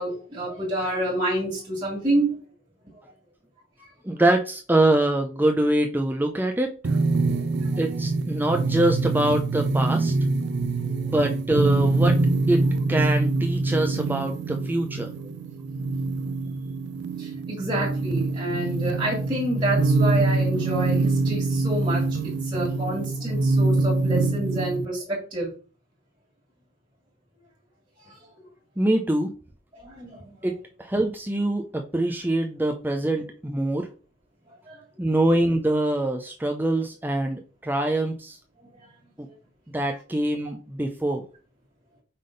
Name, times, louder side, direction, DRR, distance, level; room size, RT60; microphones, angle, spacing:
voice 1, 0.0-2.3 7.2-7.7 10.9-11.0 17.2-25.5 28.0-28.1 29.8-30.3 34.7-34.8, right 1 dB, 25° right, -4 dB, 2.1 m, -28 dB
voice 2, 4.0-7.0 7.8-10.1 11.0-12.2 12.5-15.1 28.8-29.4 30.4-33.9 35.0-38.4 39.7-41.2, right 1 dB, 10° right, 4 dB, 0.5 m, -24 dB
sound 1, 6.8-24.9, right 3 dB, 60° right, 0.4 m, -24 dB
5.6 x 3.5 x 5.2 m, 0.37 s
head